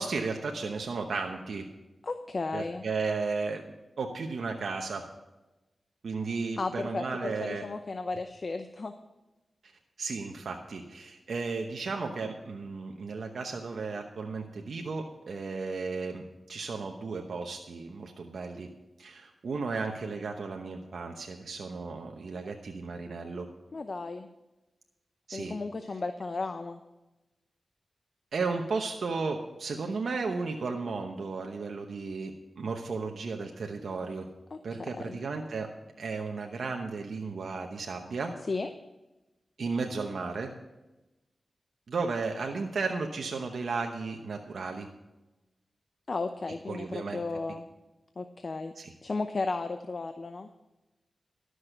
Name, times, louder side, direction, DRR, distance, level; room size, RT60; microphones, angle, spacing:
voice 1, 0.0-1.6 2.5-3.6 4.0-5.0 6.0-7.7 9.6-9.7 10.0-18.7 19.0-23.5 25.3-25.5 28.3-34.3 34.6-35.7 36.0-38.3 39.6-40.5 41.9-44.9 46.7-47.2 48.8-48.9, right 4 dB, 80° right, 3 dB, 0.9 m, -34 dB
voice 2, 2.0-2.8 6.6-8.9 23.7-24.3 25.3-26.8 34.5-35.2 38.5-38.7 46.1-47.7 48.2-48.7 49.0-50.5, left 3 dB, 60° left, 8 dB, 0.7 m, -34 dB
12.0 x 6.4 x 7.7 m, 1.0 s
cardioid pair, 45°, 0 cm